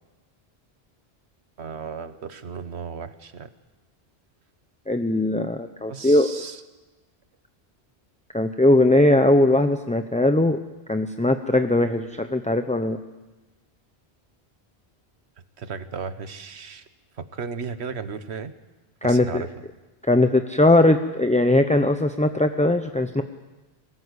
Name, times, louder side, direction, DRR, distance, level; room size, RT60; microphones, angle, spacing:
voice 1, 1.6-3.5 5.9-6.6 15.6-16.8 17.2-18.5 19.0-19.5, right 5 dB, 80° right, 12 dB, 1.4 m, -35 dB
voice 2, 4.9-6.3 8.3-10.6 10.9-13.0 19.0-19.4 20.1-23.2, left 1 dB, 10° left, 7 dB, 0.6 m, -20 dB
22.0 x 18.5 x 8.2 m, 1.1 s
omnidirectional pair, 1.1 m